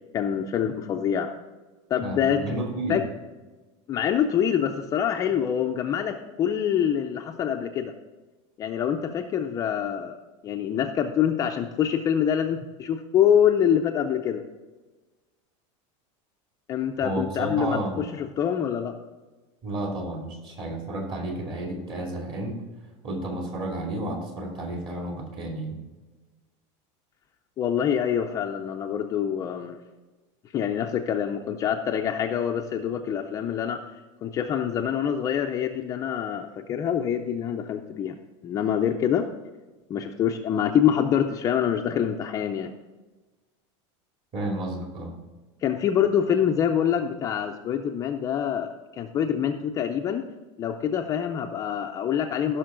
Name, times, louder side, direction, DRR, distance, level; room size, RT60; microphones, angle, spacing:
voice 1, 0.1-1.3 1.9-2.5 2.9-3.0 3.9-7.9 8.6-10.2 10.4-14.4 16.7-18.9 27.6-29.8 30.5-33.8 34.2-38.2 38.4-39.3 39.9-42.7 45.6-50.2 50.6-52.6, left 9 dB, 20° left, 3 dB, 0.4 m, -25 dB
voice 2, 2.0-3.0 17.0-18.1 19.6-22.6 23.0-25.8 44.3-45.1, right 1 dB, 35° right, 1 dB, 2.5 m, -31 dB
15.0 x 6.3 x 3.8 m, 1.2 s
supercardioid pair, 170°, 16 cm